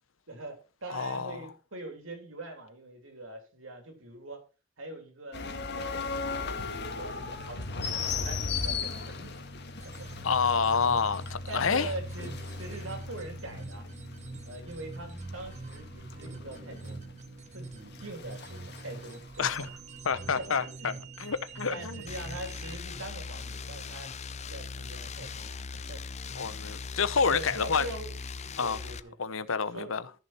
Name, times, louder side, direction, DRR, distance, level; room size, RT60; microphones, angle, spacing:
voice 1, 0.3-4.4 4.8-5.9 6.3-9.6 9.8-10.2 11.5-13.9 14.4-17.0 17.5-19.5 20.3-21.0 21.7-24.1 24.4-26.5 27.3-29.2 29.7-30.1, right 2 dB, 80° right, 3.3 m, -43 dB
voice 2, 0.9-1.4 10.2-11.9 19.4-19.7 20.0-20.9 21.2-22.0 26.3-27.8 28.6-28.8 29.2-30.0, left 5 dB, 75° left, 0.9 m, -28 dB
sound 1, 5.3-19.2, left 4 dB, 55° left, 1.8 m, -37 dB
sound 2, 9.8-22.8, right 3 dB, 35° right, 1.2 m, -45 dB
sound 3, 22.1-29.0, left 4 dB, 35° left, 0.5 m, -39 dB
14.0 x 6.4 x 4.4 m
head